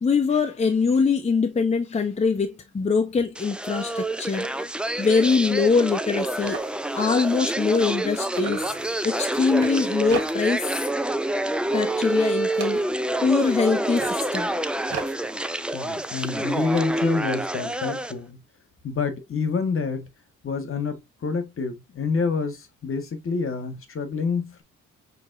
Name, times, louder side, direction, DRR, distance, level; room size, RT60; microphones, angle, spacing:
voice 1, 0.0-4.5 5.0-6.7 6.9-8.6 9.0-10.7 11.7-12.8 13.2-14.5, left 5 dB, 20° left, 0.8 m, -23 dB
sound 1, 3.4-18.1, right 1 dB, 5° right, 0.4 m, -27 dB
sound 2, 5.2-5.4 5.8-5.9 6.1-8.1 8.3-10.7 11.0-11.4 11.7-13.2 13.8-16.8, right 7 dB, 55° right, 1.3 m, -40 dB
voice 2, 15.7-18.4 18.8-20.1 20.4-24.6, left 5 dB, 45° left, 1.4 m, -28 dB
6.1 x 3.1 x 2.5 m
cardioid pair, 90°, 30 cm